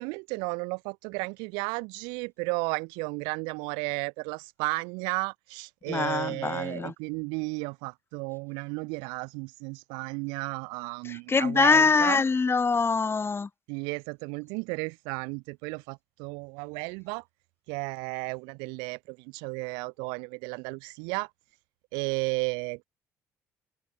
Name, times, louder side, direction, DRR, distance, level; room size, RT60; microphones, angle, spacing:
voice 1, 0.0-12.2 13.7-17.2 17.7-21.3 21.9-22.8, right 33 dB, 75° right, 1.3 m, -33 dB
voice 2, 5.9-6.9 11.1-13.5, left 4 dB, 30° left, 1.2 m, -24 dB
hypercardioid pair, 50°, 8 cm